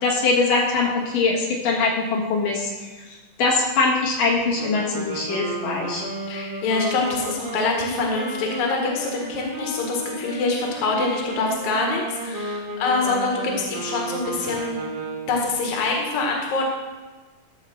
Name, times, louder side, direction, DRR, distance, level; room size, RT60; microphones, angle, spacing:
voice 1, 0.0-2.7 3.4-6.0, left 3 dB, 90° left, -3 dB, 3.4 m, -22 dB
sound 1, 4.5-15.5, right 2 dB, 50° right, 2.5 m, -33 dB
voice 2, 6.3-14.8 15.3-16.7, left 3 dB, 65° left, 0 dB, 2.9 m, -25 dB
13.5 x 4.8 x 6.4 m, 1.2 s
omnidirectional pair, 3.7 m